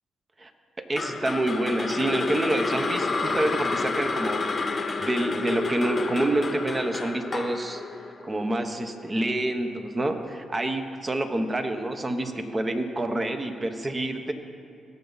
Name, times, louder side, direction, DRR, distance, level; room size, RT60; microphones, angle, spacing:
sound 1, 0.9-9.1, left 3 dB, 35° left, 0.9 m, -29 dB
voice 1, 0.9-4.4 5.0-7.8 8.2-14.3, right 1 dB, 30° right, 6 dB, 1.1 m, -27 dB
17.5 x 6.9 x 4.0 m, 2.4 s
supercardioid pair, 60°, 0 cm